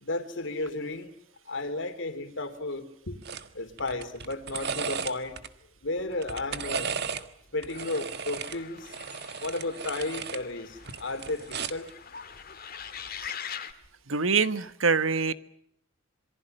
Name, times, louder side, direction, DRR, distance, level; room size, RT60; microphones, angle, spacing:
voice 1, 0.0-1.1 1.5-3.2 3.5-5.4 5.8-6.9 7.5-8.9 9.4-11.9, left 2 dB, 65° left, 3.1 m, -33 dB
sound 1, 3.2-3.5 3.8-5.5 6.1-7.3 7.6-10.4 10.8-11.9 13.1-13.3, right 6 dB, 55° right, 1.6 m, -35 dB
sound 2, 7.7-13.7, left 8 dB, 50° left, 1.9 m, -43 dB
voice 2, 14.1-15.3, right 5 dB, 80° right, 1.4 m, -24 dB
27.0 x 23.5 x 6.7 m
head